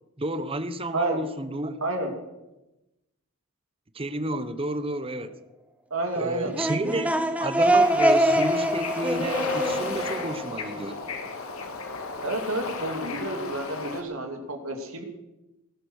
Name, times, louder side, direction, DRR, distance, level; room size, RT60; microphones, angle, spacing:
voice 1, 0.2-1.8 3.9-5.4 6.1-11.0 13.1-13.2, right 1 dB, 25° right, 1.0 m, -31 dB
voice 2, 1.8-2.1 5.9-6.5 12.2-15.0, right 2 dB, 75° right, 2.8 m, -30 dB
sound 1, 6.4-11.1, right 1 dB, 5° right, 1.1 m, -24 dB
Bird / Ocean, 7.6-14.0, left 4 dB, 85° left, 2.2 m, -34 dB
19.5 x 11.0 x 6.5 m
head